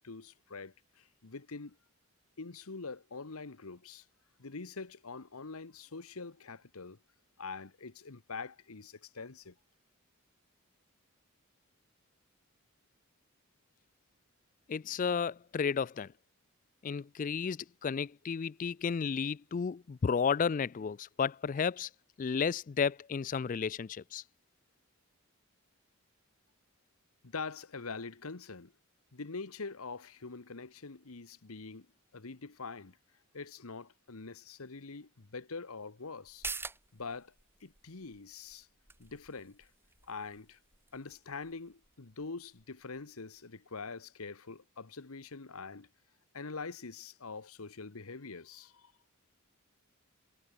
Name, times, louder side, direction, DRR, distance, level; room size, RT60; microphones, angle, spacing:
voice 1, 0.0-1.8 2.4-4.1 4.4-7.0 7.4-9.5 27.2-28.7 29.1-31.9 32.1-33.0 33.3-36.5 36.9-37.3 37.6-38.7 39.0-39.7 40.1-40.6 40.9-45.9 46.3-48.9, left 4 dB, 80° left, 1.2 m, -44 dB
voice 2, 14.7-16.1 16.8-21.9 22.2-24.2, left 6 dB, 35° left, 0.3 m, -32 dB
sound 1, 36.2-43.4 43.7-43.8, right 3 dB, 10° right, 2.7 m, -48 dB
head